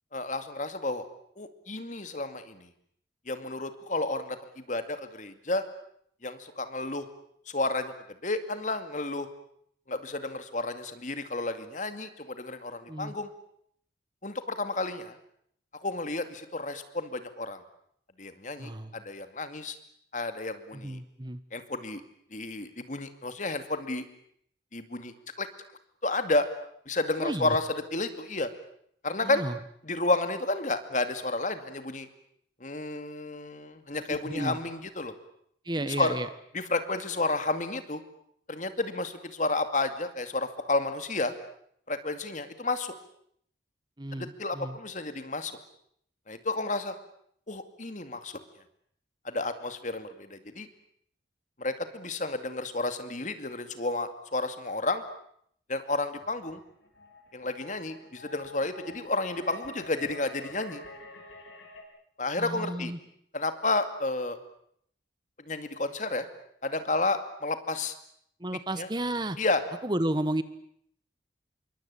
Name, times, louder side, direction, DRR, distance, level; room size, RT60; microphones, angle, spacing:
voice 1, 0.1-1.1 1.4-2.7 3.3-5.6 6.2-7.1 7.5-7.9 8.2-9.3 9.9-13.3 14.2-15.2 15.8-17.6 18.2-19.8 20.1-21.0 21.5-22.0 22.3-24.1 24.7-25.5 26.0-26.5 26.9-28.5 29.0-29.4 29.8-32.1 32.6-35.1 35.8-36.2 36.5-38.0 38.5-41.3 41.9-42.9 44.2-45.5 46.3-46.9 47.5-48.3 49.2-50.7 51.6-55.0 55.7-56.6 57.3-60.8 62.2-62.9 63.3-64.4 65.5-66.3 66.6-67.9 68.8-68.9 69.4-69.6, left 2 dB, 40° left, 9 dB, 2.3 m, -31 dB
voice 2, 18.6-19.0 20.7-21.4 27.2-27.6 29.2-29.6 34.1-34.6 35.6-36.3 44.0-44.8 62.4-63.0 68.4-69.4 69.8-70.4, right 1 dB, 25° right, 13 dB, 1.2 m, -32 dB
sound 1, 56.2-61.8, left 2 dB, 90° left, 7.3 m, -48 dB
27.0 x 23.5 x 8.5 m, 0.69 s
head